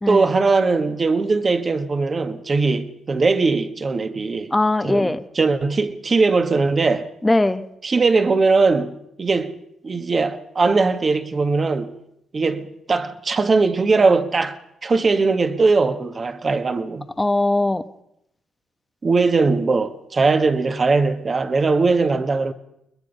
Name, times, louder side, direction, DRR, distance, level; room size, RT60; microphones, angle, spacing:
voice 1, 0.1-4.5 4.8-7.1 7.8-9.5 9.8-11.9 12.3-17.0 19.0-22.5, right 4 dB, 35° right, 1.6 m, -20 dB
voice 2, 4.5-5.2 7.2-7.6 17.2-17.8, left 2 dB, 15° left, 1.1 m, -20 dB
22.0 x 21.0 x 5.5 m
cardioid pair, 90°, 0 cm